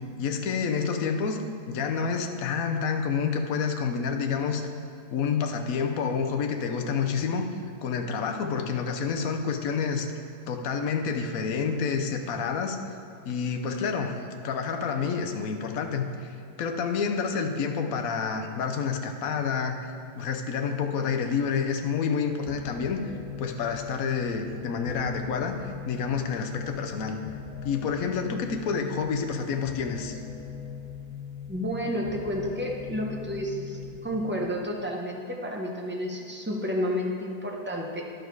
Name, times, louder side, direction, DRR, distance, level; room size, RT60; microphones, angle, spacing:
voice 1, 0.2-1.4 1.7-4.6 5.1-7.5 7.8-10.1 10.5-12.8 13.2-19.8 20.2-23.1 23.4-27.2 27.6-30.2, left 6 dB, 65° left, 4 dB, 1.1 m, -28 dB
sound 1, 22.5-34.5, left 7 dB, 85° left, 1.5 m, -40 dB
voice 2, 31.5-38.0, equal, 15° right, -1 dB, 0.3 m, -31 dB
10.5 x 6.4 x 4.6 m, 2.5 s
omnidirectional pair, 1.7 m